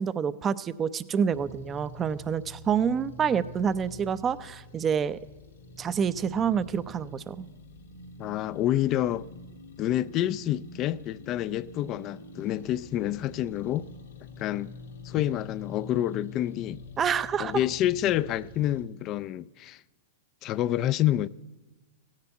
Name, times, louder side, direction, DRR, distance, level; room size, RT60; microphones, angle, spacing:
voice 1, 0.0-5.2 5.8-7.5 17.0-17.5, right 7 dB, 25° right, 0.6 m, -27 dB
sound 1, 1.3-18.8, left 2 dB, 90° left, 2.7 m, -46 dB
voice 2, 8.2-9.3 9.8-13.9 14.4-14.7 15.0-16.8 17.4-19.8 20.4-21.3, left 13 dB, 40° left, 0.5 m, -28 dB
15.5 x 10.5 x 8.1 m
hypercardioid pair, 115°, 0 cm